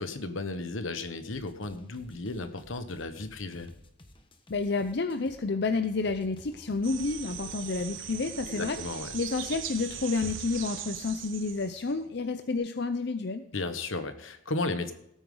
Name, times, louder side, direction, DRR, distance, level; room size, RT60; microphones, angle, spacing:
voice 1, 0.0-3.7 8.5-9.1 13.5-14.9, left 2 dB, 85° left, 9 dB, 1.3 m, -34 dB
sound 1, 1.3-5.4 6.0-10.5, left 1 dB, 25° left, 1.1 m, -54 dB
voice 2, 4.5-8.8 9.1-13.4, left 4 dB, 55° left, 8 dB, 0.6 m, -30 dB
sound 2, 5.0-12.6, equal, 50° right, 4.0 m, -57 dB
sound 3, 6.8-11.9, right 9 dB, 80° right, 1.1 m, -40 dB
17.5 x 9.0 x 3.9 m, 0.76 s
head